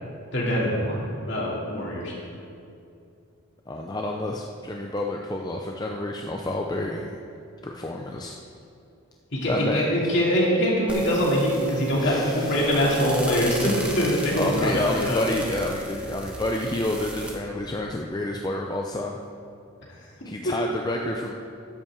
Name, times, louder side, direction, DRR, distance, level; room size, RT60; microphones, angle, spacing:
voice 1, 0.3-2.1 9.3-15.2, equal, 50° left, -4 dB, 2.6 m, -23 dB
voice 2, 3.7-7.2 7.6-8.4 9.5-10.1 12.0-12.7 14.3-19.2 20.2-21.3, left 1 dB, 20° left, 1 dB, 0.4 m, -29 dB
sound 1, 10.9-17.3, right 1 dB, 5° right, 1.0 m, -33 dB
11.0 x 5.8 x 7.1 m, 2.6 s
head